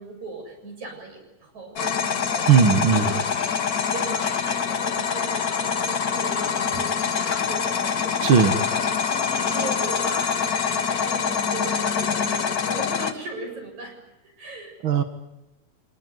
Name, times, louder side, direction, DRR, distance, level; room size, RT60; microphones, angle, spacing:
voice 1, 0.0-3.3 3.9-7.9 9.0-9.2 9.5-13.9 14.2-14.8, right 3 dB, 70° right, 1 dB, 8.9 m, -38 dB
sound 1, 1.7-13.1, left 6 dB, 65° left, 0.9 m, -25 dB
voice 2, 2.5-3.2 8.2-8.6 14.8-15.0, right 6 dB, 50° right, 8 dB, 2.0 m, -17 dB
26.5 x 19.5 x 9.5 m, 0.97 s
omnidirectional pair, 3.4 m